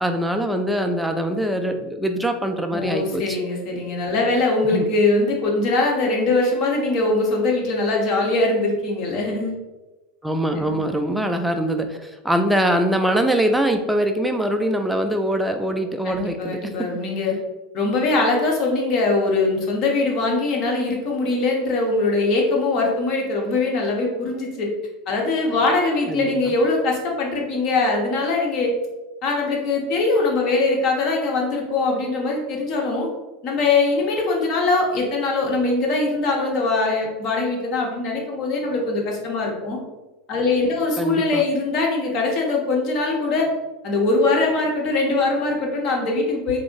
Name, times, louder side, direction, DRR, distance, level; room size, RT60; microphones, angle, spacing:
voice 1, 0.0-3.4 4.7-4.9 10.2-16.7 26.1-26.3 41.0-41.4, right 1 dB, 5° right, 5 dB, 0.3 m, -23 dB
voice 2, 2.7-9.5 10.6-10.8 16.0-17.4 17.7-24.7 25.1-28.7 29.2-33.1 33.4-39.8 40.3-43.5 43.8-46.6, left 3 dB, 50° left, 0 dB, 0.8 m, -22 dB
2.5 x 2.0 x 3.7 m, 1.1 s
hypercardioid pair, 110°, 0 cm